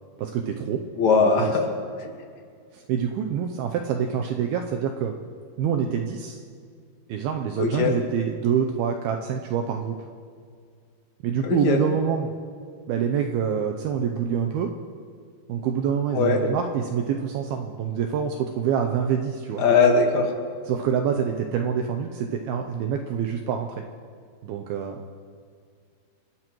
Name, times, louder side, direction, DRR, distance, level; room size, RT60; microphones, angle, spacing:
voice 1, 0.2-0.8 1.2-1.5 2.7-5.1 5.6-6.4 7.1-10.0 11.2-12.3 12.9-14.7 15.5-19.6 20.7-23.7 24.4-25.0, right 7 dB, 80° right, 4 dB, 2.3 m, -26 dB
voice 2, 1.0-1.6 2.0-2.1 7.6-7.9 11.4-11.8 16.1-16.4 19.6-20.3, left 4 dB, 55° left, 1 dB, 2.2 m, -20 dB
28.5 x 13.5 x 3.1 m, 2.2 s
omnidirectional pair, 5.0 m